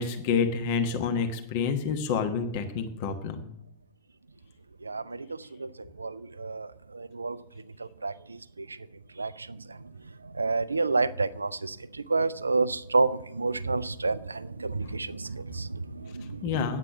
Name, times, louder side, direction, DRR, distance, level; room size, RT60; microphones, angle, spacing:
voice 1, 0.0-3.4 16.4-16.8, left 5 dB, 50° left, 1.1 m, -28 dB
voice 2, 4.8-5.7 6.0-7.4 7.8-8.8 9.2-9.8 10.2-16.5, right 3 dB, 80° right, 0.4 m, -30 dB
9.2 x 8.1 x 6.0 m
figure-of-eight pair, 90°, 0 cm